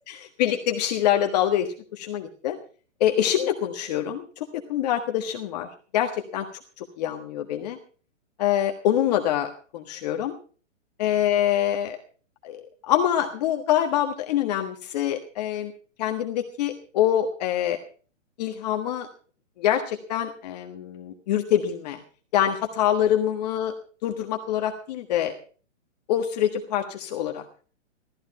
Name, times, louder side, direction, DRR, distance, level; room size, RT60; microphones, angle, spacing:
voice 1, 0.1-2.6 3.0-5.7 5.9-6.5 6.8-7.8 8.4-10.3 11.0-12.0 12.4-15.7 16.0-17.8 18.4-19.1 19.6-22.0 22.3-23.7 24.0-25.3 26.1-27.4, left 11 dB, 30° left, 4 dB, 1.5 m, -25 dB
17.5 x 14.0 x 4.2 m, 0.40 s
hypercardioid pair, 165°, 39 cm